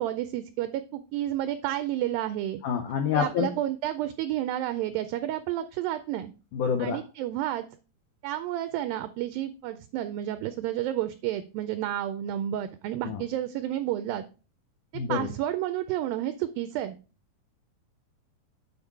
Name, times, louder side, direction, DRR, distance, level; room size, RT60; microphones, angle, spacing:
voice 1, 0.0-2.6 3.1-6.3 6.8-7.7 8.2-14.2 14.9-17.0, right 12 dB, 85° right, 11 dB, 2.1 m, -31 dB
voice 2, 2.6-3.5 6.5-7.0 13.0-13.2 14.9-15.3, left 7 dB, 80° left, 5 dB, 1.8 m, -27 dB
8.2 x 4.9 x 4.5 m, 0.34 s
omnidirectional pair, 4.6 m